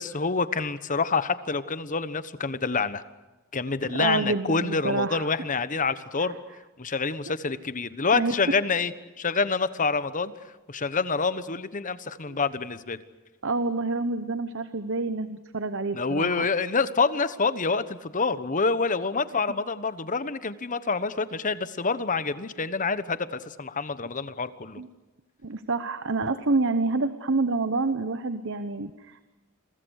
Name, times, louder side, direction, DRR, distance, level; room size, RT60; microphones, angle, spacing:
voice 1, 0.0-3.0 3.5-6.4 6.8-8.9 9.2-10.3 10.7-13.0 15.9-24.8, left 4 dB, 40° left, 14 dB, 1.2 m, -27 dB
voice 2, 3.9-5.3 6.2-6.4 8.1-8.3 12.3-12.4 13.4-16.5 24.8-24.9 25.4-29.3, right 3 dB, 60° right, 11 dB, 1.1 m, -28 dB
29.0 x 23.0 x 6.5 m, 1.1 s
head